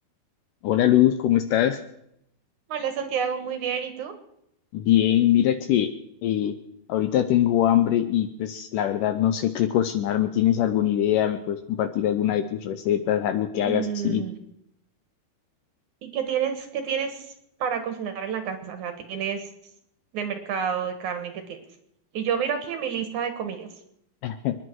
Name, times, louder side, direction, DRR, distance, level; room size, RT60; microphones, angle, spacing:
voice 1, 0.6-1.8 4.7-5.9 6.2-6.6 6.9-14.2 24.2-24.6, left 11 dB, 75° left, 10 dB, 2.0 m, -22 dB
voice 2, 2.7-4.1 13.6-14.3 16.0-17.3 17.6-19.5 20.1-21.6 22.1-23.7, right 7 dB, 60° right, 7 dB, 2.6 m, -29 dB
28.0 x 10.0 x 4.7 m, 0.78 s
omnidirectional pair, 4.3 m